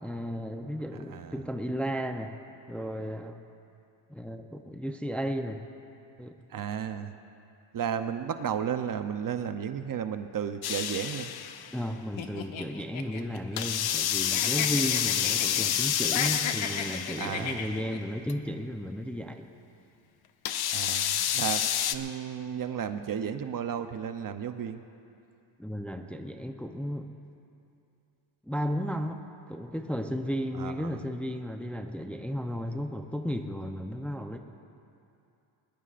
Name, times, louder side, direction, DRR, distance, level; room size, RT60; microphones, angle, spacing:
voice 1, 0.0-2.4 2.7-3.4 4.1-5.6 6.2-6.3 11.7-19.5 25.6-27.1 28.5-34.4, equal, 5° left, 5 dB, 0.6 m, -34 dB
voice 2, 1.1-1.4 6.5-7.1 7.7-11.3 17.2-17.7 20.7-24.8 30.6-31.0, right 8 dB, 40° right, 9 dB, 0.7 m, -33 dB
sound 1, 10.6-11.8 13.6-17.6 18.3-18.4 20.5-22.0, left 10 dB, 50° left, 0.7 m, -29 dB
sound 2, 12.2-14.0 14.3-15.7 16.0-18.0, left 6 dB, 65° left, 1.2 m, -35 dB
20.5 x 20.5 x 2.5 m, 2.6 s
cardioid pair, 100°, 50 cm